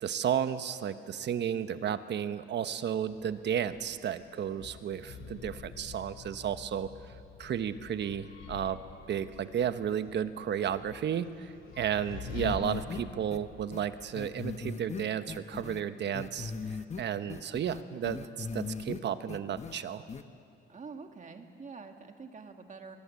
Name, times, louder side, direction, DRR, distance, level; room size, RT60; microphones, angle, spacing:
voice 1, 0.0-6.9 7.4-8.8 9.1-20.0, right 9 dB, 60° right, 11 dB, 1.2 m, -33 dB
sound 1, 3.0-15.2, left 6 dB, 85° left, 2.1 m, -47 dB
sound 2, 12.4-13.0 13.3-13.4 13.7-13.8 14.1-15.8 16.1-17.0 17.3-19.0 19.3-19.7 20.1-20.2, left 5 dB, 35° left, 1.1 m, -38 dB
voice 2, 20.7-23.0, right 4 dB, 40° right, 5 dB, 1.9 m, -46 dB
23.0 x 22.5 x 8.4 m, 2.4 s
cardioid pair, 90°, 20 cm